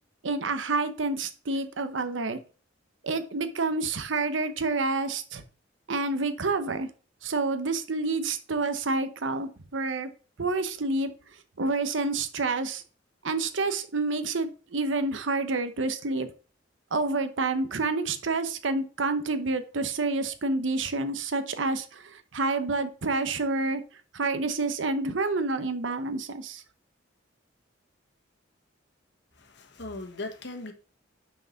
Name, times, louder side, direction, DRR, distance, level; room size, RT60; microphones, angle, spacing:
voice 1, 0.2-2.4 3.0-5.4 5.9-6.9 7.2-10.1 10.4-11.1 11.6-12.8 13.2-16.3 16.9-23.8 24.1-26.6, right 3 dB, 80° right, 0.9 m, -28 dB
voice 2, 29.4-30.7, left 2 dB, 65° left, 1.5 m, -38 dB
6.3 x 4.7 x 5.6 m
head